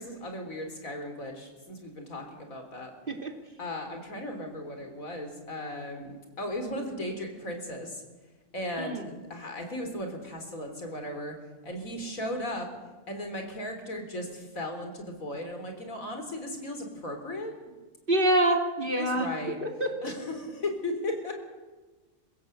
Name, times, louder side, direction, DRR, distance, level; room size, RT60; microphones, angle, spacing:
voice 1, 0.0-2.9 3.6-8.0 8.5-11.4 11.6-12.7 13.1-17.5 18.9-19.6 20.0-21.3, left 1 dB, 90° left, 5 dB, 4.2 m, -36 dB
voice 2, 18.1-19.3 19.6-20.1, right 1 dB, 40° right, 3 dB, 2.8 m, -26 dB
27.5 x 16.0 x 8.0 m, 1.3 s
omnidirectional pair, 1.4 m